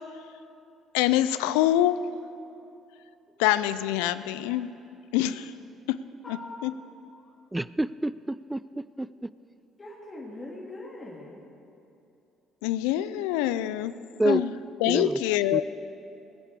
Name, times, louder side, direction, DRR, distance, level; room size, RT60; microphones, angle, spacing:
voice 1, 0.9-2.0 3.4-4.7 5.1-5.5 5.9-6.0 6.3-6.4 6.6-6.7 12.6-13.9 14.2-14.5 14.8-15.6, left 13 dB, 85° left, 14 dB, 0.5 m, -25 dB
voice 2, 6.2-7.3 9.8-11.4, left 2 dB, 30° left, -5 dB, 2.7 m, -42 dB
voice 3, 7.5-9.3 14.2-14.4 14.8-15.2 15.5-15.6, right 2 dB, 10° right, 17 dB, 0.4 m, -28 dB
20.0 x 9.1 x 6.7 m, 2.7 s
hypercardioid pair, 60°, 0 cm